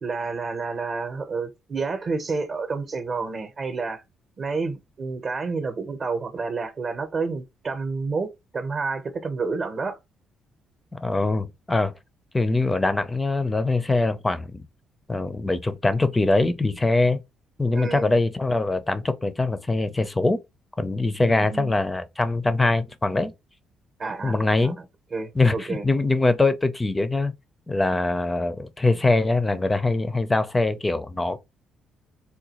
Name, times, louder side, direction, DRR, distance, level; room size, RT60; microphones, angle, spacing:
voice 1, 0.0-4.0 4.4-10.0 17.7-18.2 21.2-21.8 24.0-24.7 25.1-25.8, right 4 dB, 40° right, 0.7 m, -29 dB
voice 2, 11.0-11.9 12.3-14.6 15.1-17.2 17.6-20.4 20.8-23.3 24.2-24.8 25.3-27.3 27.7-31.4, left 2 dB, 15° left, 0.5 m, -23 dB
3.7 x 2.2 x 2.9 m
cardioid pair, 105°, 0 cm